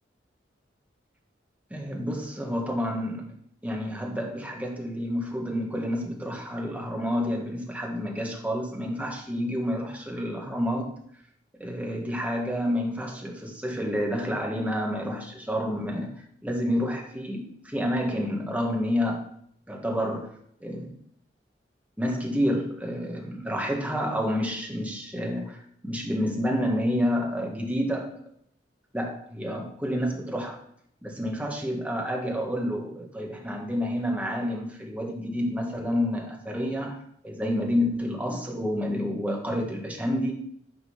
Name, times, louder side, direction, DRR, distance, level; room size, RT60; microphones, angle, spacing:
voice 1, 1.7-3.3 3.6-10.9 11.6-16.1 16.4-19.3 19.7-20.3 20.6-20.9 22.0-28.2 28.9-30.6 31.0-40.3, equal, 10° right, 0 dB, 1.5 m, -29 dB
9.3 x 3.8 x 5.9 m, 0.67 s
head